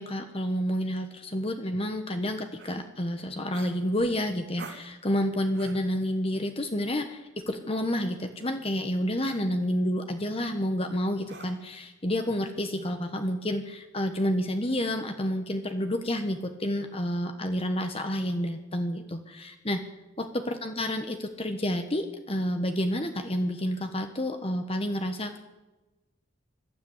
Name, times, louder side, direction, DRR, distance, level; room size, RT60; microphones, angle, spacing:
voice 1, 0.0-19.8 20.2-25.4, equal, 25° left, 7 dB, 1.2 m, -29 dB
sound 1, 2.6-2.8 3.5-4.2 4.6-4.9 5.5-5.9 7.4-7.6 8.4-8.7 9.3-9.5 11.3-11.8, right 3 dB, 50° right, 2.7 m, -47 dB
21.5 x 13.0 x 9.7 m, 1.1 s
head